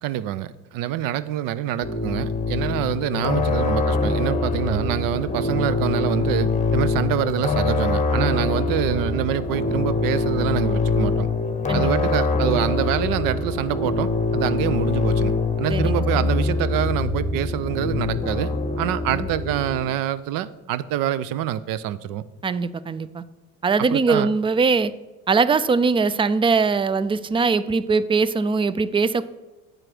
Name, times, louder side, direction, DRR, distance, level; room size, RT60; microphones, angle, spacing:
voice 1, 0.0-11.3 11.7-22.2 23.8-24.3, right 12 dB, 70° right, 17 dB, 0.6 m, -26 dB
sound 1, 1.8-19.9, left 3 dB, 20° left, 1.1 m, -24 dB
voice 2, 11.7-12.1 15.7-16.3 19.1-19.3 22.4-23.2 23.6-24.9 25.3-29.2, right 4 dB, 15° right, 16 dB, 0.3 m, -21 dB
9.1 x 4.7 x 6.0 m, 1.2 s
supercardioid pair, 80°, 35 cm